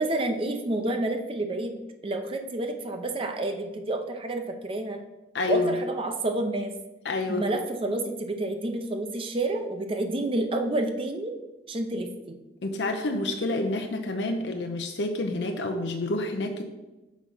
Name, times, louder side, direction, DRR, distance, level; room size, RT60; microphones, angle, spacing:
voice 1, 0.0-1.8 2.0-5.0 5.5-6.7 7.3-11.3 11.7-12.4, right 2 dB, 30° right, 5 dB, 0.6 m, -29 dB
voice 2, 5.3-5.7 7.0-7.5 12.6-16.6, left 2 dB, 75° left, 5 dB, 0.6 m, -28 dB
6.1 x 4.2 x 5.4 m, 1.1 s
head